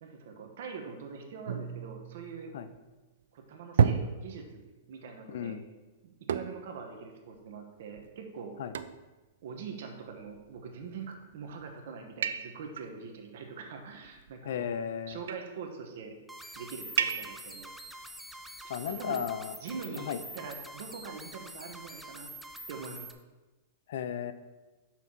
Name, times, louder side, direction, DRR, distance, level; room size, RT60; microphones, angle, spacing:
voice 1, 0.0-2.5 3.3-5.6 6.3-8.5 9.4-14.7 15.1-16.1 16.6-17.7 18.9-19.2 19.6-22.3 22.7-23.1, right 5 dB, 60° right, 4 dB, 1.1 m, -43 dB
sound 1, 1.5-2.9 3.8-4.7 6.3-6.8 7.3-7.4 8.0-8.1 8.7-9.1 10.2-10.7 11.3-11.6 12.2-12.9 14.0-14.6 15.1-15.6 17.0-17.6, right 7 dB, 85° right, 0.3 m, -32 dB
voice 2, 5.3-5.6 8.6-8.7 14.4-15.2 18.7-19.5 20.0-20.2 23.9-24.3, left 8 dB, 60° left, 11 dB, 0.5 m, -34 dB
sound 2, 16.3-23.1, right 1 dB, ahead, 0.3 m, -46 dB
5.8 x 3.9 x 5.9 m, 1.2 s
supercardioid pair, 175°, 0 cm